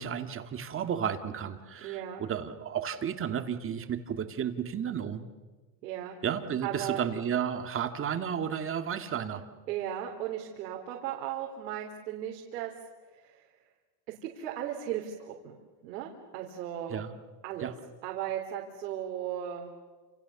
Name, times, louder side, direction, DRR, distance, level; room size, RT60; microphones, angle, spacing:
voice 1, 0.0-5.2 6.2-9.4 16.9-17.1 17.6-17.7, right 8 dB, 25° right, 8 dB, 1.9 m, -33 dB
voice 2, 1.8-2.2 5.8-6.1 6.6-7.0 9.7-12.7 13.2-13.5 14.2-17.0 17.4-17.7 18.0-19.7, right 11 dB, 85° right, 0 dB, 3.8 m, -36 dB
29.5 x 28.0 x 7.1 m, 1.3 s
supercardioid pair, 135°, 49 cm